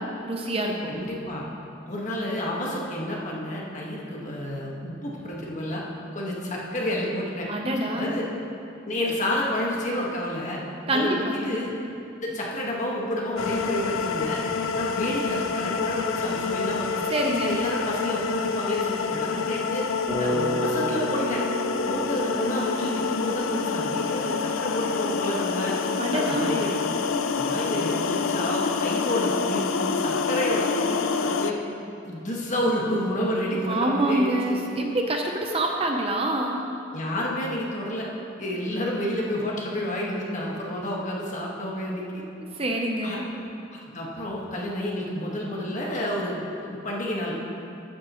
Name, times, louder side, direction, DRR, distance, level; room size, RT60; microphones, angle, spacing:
voice 1, 0.0-0.7 7.5-8.1 10.9-11.4 17.1-17.6 26.0-26.5 33.7-36.6 42.6-43.3, right 1 dB, 30° right, 1 dB, 0.7 m, -26 dB
voice 2, 0.8-1.4 1.9-5.8 6.1-7.5 7.9-8.3 8.8-10.6 10.9-11.7 12.2-14.4 14.7-17.0 17.3-19.9 20.2-21.4 21.8-25.8 26.1-26.9 27.4-31.6 32.0-34.6 36.9-38.1 38.4-42.2 43.0-43.2 43.7-47.3, left 1 dB, 40° left, -3 dB, 1.6 m, -29 dB
sound 1, 13.4-31.5, left 5 dB, 85° left, 0.5 m, -27 dB
Bass guitar, 20.1-24.2, equal, 5° right, 2.4 m, -32 dB
14.0 x 9.7 x 3.1 m, 2.7 s
head